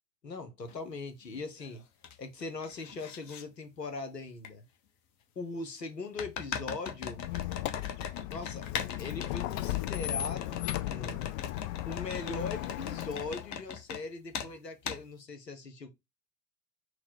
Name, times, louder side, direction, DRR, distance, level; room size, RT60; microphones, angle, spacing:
voice 1, 0.2-1.8 2.2-4.6 5.4-7.2 8.3-8.6 9.0-11.2 11.9-15.9, left 3 dB, 90° left, 0.8 m, -40 dB
sound 1, 0.7-0.8 1.3-2.2 2.4-3.4 4.4-4.5 6.2-14.0 14.3-14.5 14.9-15.0, left 7 dB, 35° left, 0.9 m, -40 dB
Squeak, 7.1-13.6, left 16 dB, 55° left, 0.5 m, -36 dB
4.1 x 2.1 x 4.3 m
figure-of-eight pair, 70°, 48 cm